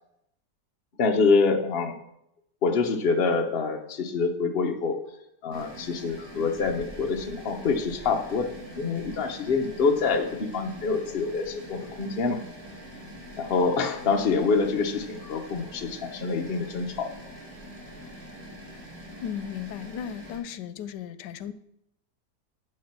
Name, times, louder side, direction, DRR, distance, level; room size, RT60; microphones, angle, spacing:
voice 1, 1.0-2.0 2.6-5.0 5.4-12.4 13.4-17.1, left 4 dB, 45° left, 4 dB, 0.9 m, -26 dB
sound 1, 5.5-20.4, equal, 40° right, 3.3 m, -44 dB
voice 2, 19.2-21.5, left 8 dB, 85° left, 13 dB, 1.2 m, -35 dB
7.7 x 6.3 x 5.9 m, 0.80 s
omnidirectional pair, 1.8 m